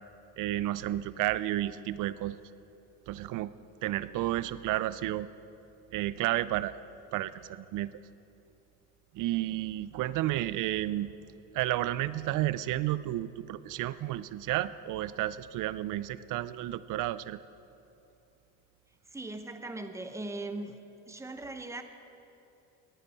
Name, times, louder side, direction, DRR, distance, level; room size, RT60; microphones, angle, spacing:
voice 1, 0.4-2.4 3.1-3.5 3.8-5.3 5.9-6.7 7.1-7.9 9.1-11.1 11.5-17.4, right 14 dB, 55° right, 16 dB, 0.5 m, -31 dB
voice 2, 19.1-20.8 21.1-21.8, right 2 dB, 10° right, 8 dB, 0.8 m, -39 dB
19.0 x 10.0 x 4.2 m, 2.8 s
cardioid pair, 110°, 37 cm